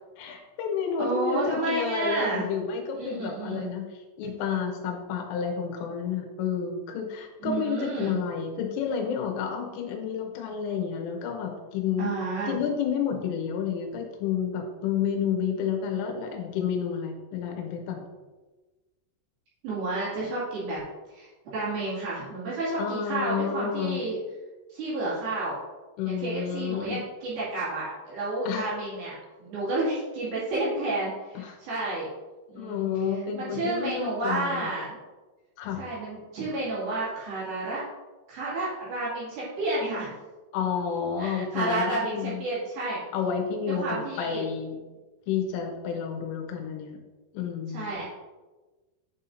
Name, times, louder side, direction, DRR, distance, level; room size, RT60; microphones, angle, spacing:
voice 1, 0.2-12.1 12.5-18.1 22.8-24.0 26.0-27.0 28.5-28.7 31.3-31.6 32.6-34.7 35.6-35.8 40.5-42.4 43.1-44.8 45.3-47.0 47.3-47.9, left 7 dB, 85° left, 2 dB, 3.4 m, -30 dB
voice 2, 1.0-2.4 3.0-3.7 7.4-8.2 12.0-12.6 19.6-20.8 21.1-24.2 24.7-25.6 26.1-29.1 29.4-32.1 32.5-32.8 33.3-35.0 35.8-37.8 38.3-40.1 41.2-43.0 43.7-44.4 47.7-48.0, right 2 dB, 55° right, -9 dB, 3.6 m, -31 dB
10.0 x 5.7 x 2.7 m, 1.2 s
omnidirectional pair, 5.9 m